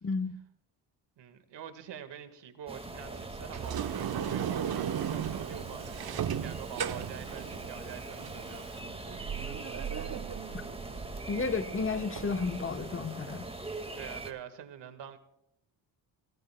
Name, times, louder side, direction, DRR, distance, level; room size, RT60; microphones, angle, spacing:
voice 1, 0.0-0.4 10.5-10.6 11.3-13.5, left 4 dB, 30° left, 8 dB, 1.2 m, -32 dB
voice 2, 1.2-8.8 13.9-15.2, right 9 dB, 80° right, 8 dB, 1.9 m, -46 dB
sound 1, 2.7-14.3, right 2 dB, 15° right, 2.0 m, -42 dB
Sliding door, 3.0-13.2, right 8 dB, 40° right, 0.8 m, -44 dB
Sliding door 2, 3.6-8.8, right 9 dB, 60° right, 1.1 m, -35 dB
23.5 x 18.5 x 2.3 m, 0.79 s
cardioid pair, 95°, 41 cm